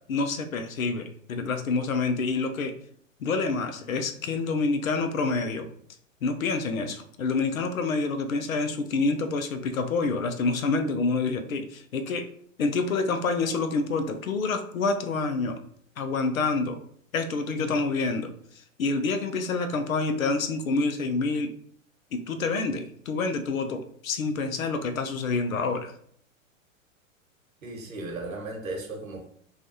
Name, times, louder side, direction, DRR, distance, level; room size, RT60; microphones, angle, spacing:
voice 1, 0.1-2.8 3.2-5.7 6.2-12.3 12.6-15.6 16.0-16.8 17.1-18.3 18.8-21.5 22.1-25.9, left 3 dB, 85° left, 7 dB, 0.6 m, -27 dB
voice 2, 27.6-29.3, right 2 dB, 80° right, 0 dB, 1.2 m, -36 dB
3.3 x 2.3 x 2.6 m, 0.64 s
hypercardioid pair, 110°, 40 cm